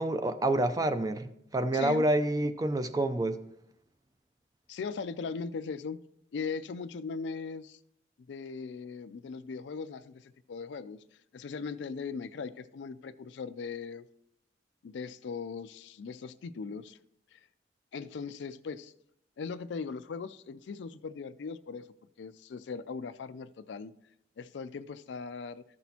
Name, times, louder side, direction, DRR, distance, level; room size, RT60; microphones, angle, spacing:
voice 1, 0.0-3.4, right 1 dB, 20° right, 0.4 m, -28 dB
voice 2, 1.7-2.0 4.7-6.0 6.3-7.8 8.3-11.0 11.3-14.1 14.8-17.0 17.3-17.4 17.9-18.9 19.4-21.9 22.2-23.9 24.4-25.6, left 5 dB, 75° left, 0.4 m, -39 dB
14.0 x 6.1 x 2.8 m
head